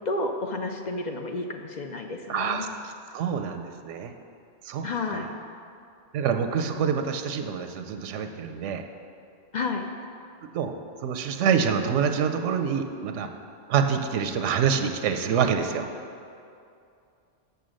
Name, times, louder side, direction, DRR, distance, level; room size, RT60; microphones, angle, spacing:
voice 1, 0.1-2.6 4.8-5.3 9.5-9.9, left 3 dB, 55° left, 4 dB, 0.5 m, -31 dB
voice 2, 2.3-4.1 4.6-4.8 5.1-5.2 6.1-8.8 10.5-10.7 11.0-13.3 13.7-15.9, right 7 dB, 90° right, 7 dB, 0.9 m, -26 dB
6.9 x 6.6 x 6.3 m, 2.5 s
omnidirectional pair, 1.2 m